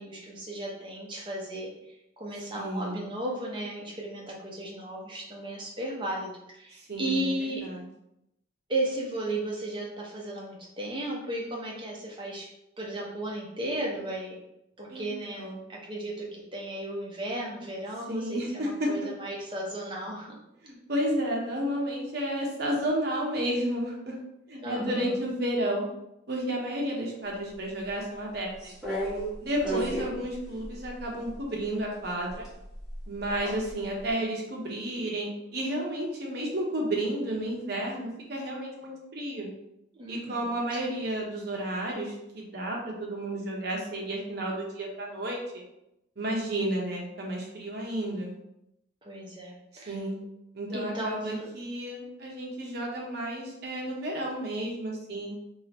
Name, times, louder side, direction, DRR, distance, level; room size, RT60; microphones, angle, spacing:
voice 1, 0.0-1.7 2.2-7.6 8.7-12.5 12.8-14.3 14.8-20.4 24.6-25.2 29.7-29.9 39.9-40.5 49.0-50.0 50.7-51.5, right 1 dB, 25° right, -3 dB, 0.8 m, -35 dB
voice 2, 2.5-3.0 6.9-7.8 14.9-15.6 18.1-18.9 20.6-24.2 24.5-25.9 26.3-28.7 29.4-32.5 33.1-39.5 40.1-45.6 46.2-48.3 49.9-50.2 50.5-55.3, right 1 dB, 50° right, -1 dB, 0.9 m, -32 dB
sound 1, 28.6-31.4 32.3-33.7 34.1-34.2, right 1 dB, ahead, 1.4 m, -34 dB
3.7 x 3.2 x 2.9 m, 0.83 s
head